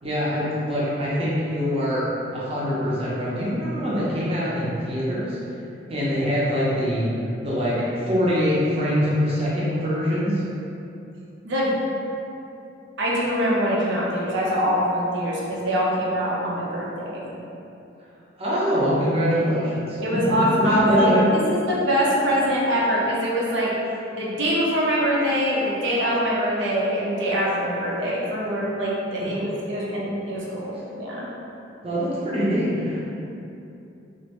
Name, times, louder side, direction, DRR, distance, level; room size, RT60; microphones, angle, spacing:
voice 1, 0.0-5.4 5.9-7.1 7.4-10.4 18.4-21.3 29.2-29.4 29.7-30.2 31.8-33.0, equal, 30° right, -9 dB, 0.6 m, -24 dB
voice 2, 11.4-11.8 13.0-17.3 20.0-23.7 24.1-31.3, equal, 75° right, -5 dB, 0.6 m, -23 dB
3.1 x 2.5 x 2.9 m, 2.8 s
head